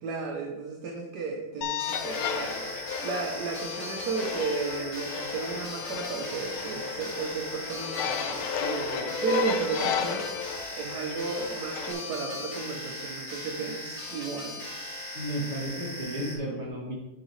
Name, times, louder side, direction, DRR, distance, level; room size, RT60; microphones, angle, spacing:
voice 1, 0.0-14.6, right 4 dB, 60° right, 2 dB, 1.2 m, -34 dB
sound 1, 1.6-11.9, left 5 dB, 85° left, 1.6 m, -33 dB
sound 2, 1.8-16.4, left 1 dB, 15° left, 1.6 m, -39 dB
voice 2, 15.1-16.9, right 1 dB, 35° right, -3 dB, 2.3 m, -33 dB
8.9 x 6.7 x 3.1 m, 1.1 s
omnidirectional pair, 2.3 m